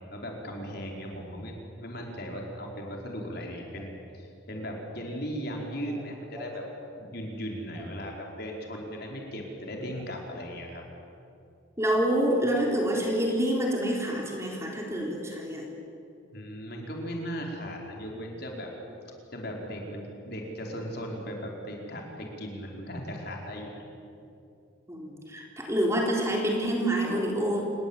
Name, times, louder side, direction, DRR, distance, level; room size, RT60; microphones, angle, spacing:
voice 1, 0.0-6.7 7.0-10.8 16.3-18.7 19.3-23.7, equal, 50° left, 0 dB, 5.0 m, -37 dB
voice 2, 11.8-15.7 24.9-27.6, right 1 dB, 15° right, -1 dB, 3.8 m, -27 dB
28.0 x 21.0 x 9.1 m, 2.7 s
head